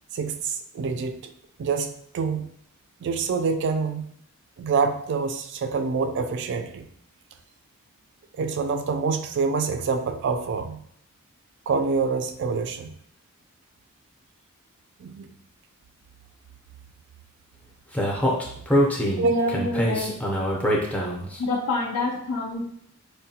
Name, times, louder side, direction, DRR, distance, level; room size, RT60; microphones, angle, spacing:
voice 1, 0.1-1.3 1.6-2.5 3.0-4.1 4.6-6.9 8.3-10.8 11.7-13.0 15.0-15.3 19.2-19.5, right 4 dB, 55° right, 8 dB, 0.3 m, -26 dB
Speech, 17.9-21.3, equal, 5° left, 0.5 m, -24 dB
voice 2, 19.2-20.2 21.4-22.7, left 2 dB, 75° left, -1 dB, 0.4 m, -27 dB
4.6 x 2.1 x 2.7 m, 0.68 s
head